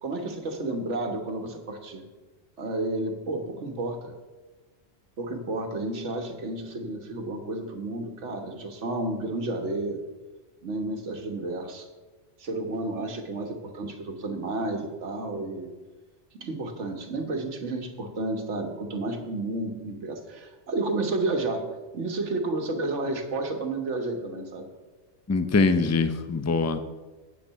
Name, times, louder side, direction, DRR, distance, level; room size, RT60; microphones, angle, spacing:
voice 1, 0.0-2.0 2.6-4.1 5.2-10.0 10.6-11.9 12.4-15.7 16.3-21.7 21.9-24.7, right 2 dB, 75° right, 5 dB, 1.6 m, -31 dB
voice 2, 25.3-26.8, left 4 dB, 20° left, 10 dB, 0.4 m, -23 dB
9.9 x 7.9 x 5.6 m, 1.3 s
omnidirectional pair, 1.2 m